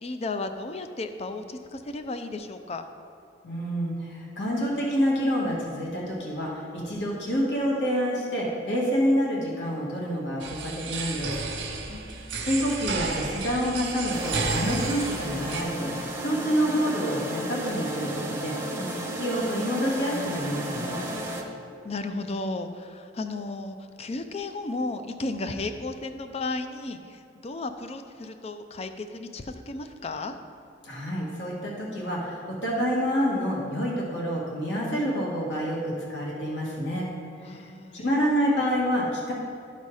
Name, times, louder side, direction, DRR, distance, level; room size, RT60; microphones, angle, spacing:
voice 1, 0.0-2.8 11.9-12.5 21.8-30.3 37.4-38.0, left 2 dB, 35° left, 8 dB, 0.5 m, -34 dB
voice 2, 3.4-11.3 12.4-18.9 19.2-21.0 30.8-37.1 37.9-39.3, equal, 70° left, -3 dB, 1.7 m, -27 dB
sound 1, 10.4-15.6, right 4 dB, 80° right, 0.8 m, -32 dB
sound 2, 14.1-21.4, right 1 dB, 15° right, 0.8 m, -33 dB
12.5 x 4.2 x 4.8 m, 2.6 s
head